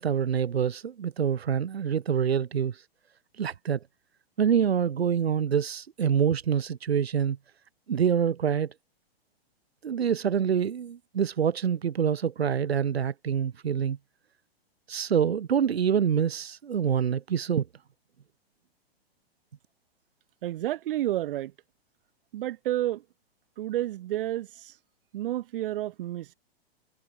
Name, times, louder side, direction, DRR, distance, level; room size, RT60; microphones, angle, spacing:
voice 1, 0.0-2.8 3.4-3.8 4.4-7.4 7.9-8.7 9.8-14.0 14.9-17.7, right 8 dB, 75° right, 5.6 m, -26 dB
voice 2, 20.4-21.5 22.3-23.0 23.6-24.7 25.1-26.3, right 14 dB, 60° right, 6.5 m, -30 dB
hypercardioid pair, 125°, 31 cm